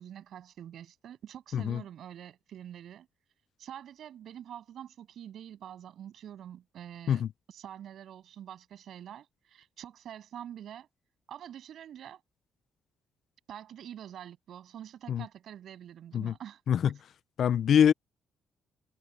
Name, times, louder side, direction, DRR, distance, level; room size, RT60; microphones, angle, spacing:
voice 1, 0.0-3.1 3.6-7.2 7.5-10.9 11.3-12.2 13.5-16.6, right 10 dB, 70° right, 7.8 m, -46 dB
voice 2, 17.4-17.9, left 8 dB, 65° left, 0.4 m, -24 dB
cardioid pair, 90°, 0 cm